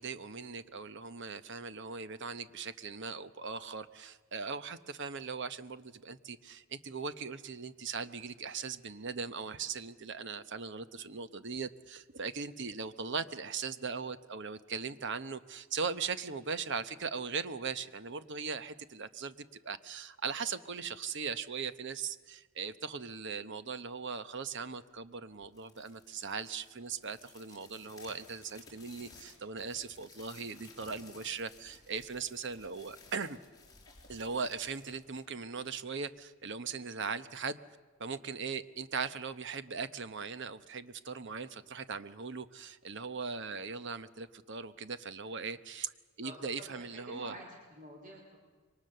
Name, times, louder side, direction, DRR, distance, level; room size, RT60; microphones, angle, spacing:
voice 1, 0.0-33.4 34.1-37.6 38.0-45.9 46.2-47.3, right 5 dB, 55° right, 12 dB, 1.0 m, -39 dB
sound 1, 25.4-35.8, left 4 dB, 15° left, 4.8 m, -57 dB
voice 2, 46.2-48.4, right 1 dB, 40° right, 1 dB, 3.8 m, -49 dB
27.0 x 23.5 x 6.7 m, 1.3 s
head